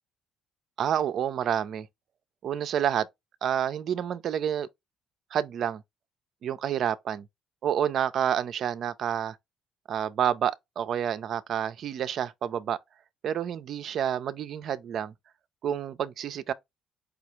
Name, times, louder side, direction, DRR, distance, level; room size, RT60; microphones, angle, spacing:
voice 1, 0.8-1.9 2.4-3.1 3.4-4.7 5.3-5.8 6.4-7.3 7.6-9.4 9.9-12.8 13.2-15.1 15.6-16.5, right 9 dB, 60° right, 0.4 m, -29 dB
4.9 x 2.4 x 3.0 m
hypercardioid pair, 60°, 0 cm